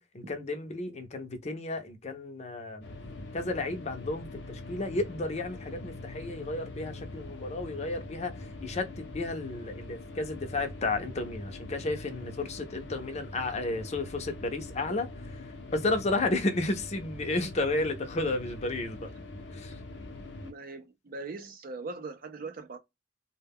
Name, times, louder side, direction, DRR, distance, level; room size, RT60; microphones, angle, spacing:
voice 1, 0.0-2.8 3.3-19.1 19.5-19.8, left 2 dB, 40° left, 0.5 m, -32 dB
sound 1, 2.8-20.5, left 2 dB, 80° left, 0.6 m, -43 dB
voice 2, 20.4-22.8, right 3 dB, 50° right, 0.4 m, -40 dB
2.2 x 2.1 x 3.4 m
head